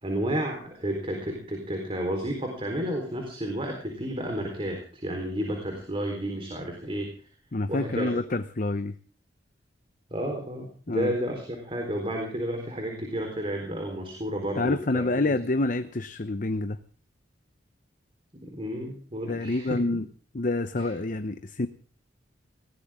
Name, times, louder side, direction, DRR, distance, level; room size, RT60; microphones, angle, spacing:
voice 1, 0.0-7.1 7.7-8.2 10.1-15.3 18.3-19.8 20.8-20.9, right 1 dB, 30° right, 2 dB, 4.1 m, -31 dB
voice 2, 7.5-8.9 10.9-11.1 14.6-16.8 19.3-20.1 20.3-21.7, left 2 dB, 45° left, 10 dB, 0.9 m, -27 dB
21.0 x 17.5 x 3.7 m, 0.42 s
head